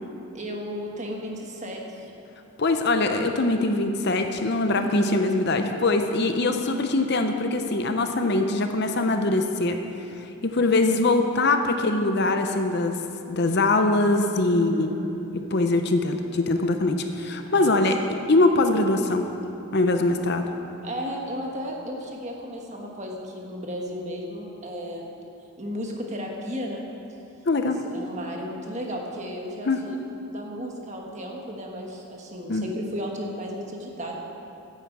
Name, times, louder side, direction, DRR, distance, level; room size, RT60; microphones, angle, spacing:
voice 1, 0.3-2.1 4.7-5.0 6.4-6.6 10.7-11.0 14.5-15.1 17.5-17.8 20.8-25.1 25.6-26.9 27.9-30.0 30.3-34.1, equal, 30° right, 0 dB, 1.4 m, -34 dB
voice 2, 2.6-9.8 10.4-13.0 13.3-14.9 15.3-17.9 18.3-19.3 19.7-20.5 27.5-27.8 29.7-29.8 32.5-32.6, left 2 dB, 50° left, 6 dB, 0.7 m, -22 dB
10.5 x 8.8 x 7.5 m, 2.8 s
head